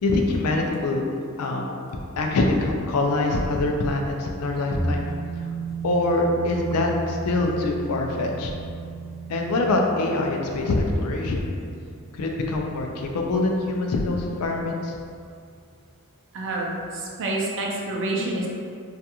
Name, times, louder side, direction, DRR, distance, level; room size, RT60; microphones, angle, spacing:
voice 1, 0.0-1.0 1.4-1.7 2.2-5.1 5.8-8.5 9.3-11.4 12.1-15.0, left 2 dB, 80° left, 1 dB, 0.4 m, -24 dB
sound 1, 4.7-13.8 14.1-14.2, right 3 dB, 45° left, 0.7 m, -34 dB
voice 2, 16.3-18.5, right 2 dB, 60° right, -2 dB, 0.4 m, -28 dB
2.4 x 2.3 x 2.8 m, 2.3 s
head